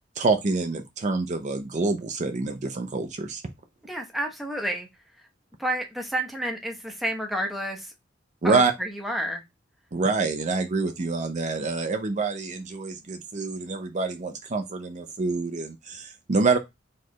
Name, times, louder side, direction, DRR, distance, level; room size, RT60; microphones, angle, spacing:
voice 1, 0.2-3.4 8.4-8.7 9.9-16.6, right 3 dB, 40° right, 0.6 m, -26 dB
voice 2, 3.8-4.9 5.6-7.9 8.4-9.4, right 1 dB, ahead, 0.9 m, -30 dB
4.3 x 3.2 x 3.0 m
head